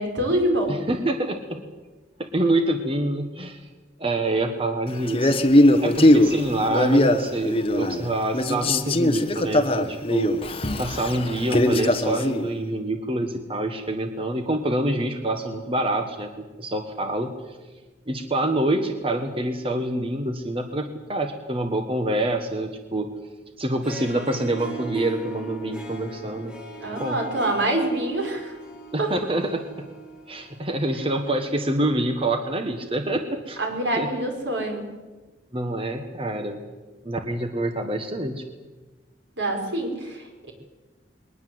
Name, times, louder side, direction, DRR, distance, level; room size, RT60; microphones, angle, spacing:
voice 1, 0.0-0.7 26.8-28.6 29.0-29.1 33.6-34.9 39.4-40.5, right 1 dB, 80° right, 3 dB, 5.7 m, -25 dB
voice 2, 0.7-1.6 2.2-3.7 4.0-5.4 5.8-10.3 10.8-17.6 18.1-23.1 23.6-26.5 27.0-27.2 28.9-29.9 30.3-33.6 34.0-34.1 35.5-36.6 37.0-38.4, right 1 dB, 30° right, 6 dB, 1.5 m, -26 dB
Male speech man speaking, 5.1-8.1 8.3-12.5, left 1 dB, 30° left, 1.3 m, -20 dB
Harp, 23.7-31.1, right 1 dB, 5° right, 2.9 m, -39 dB
22.0 x 19.5 x 8.0 m, 1.2 s
head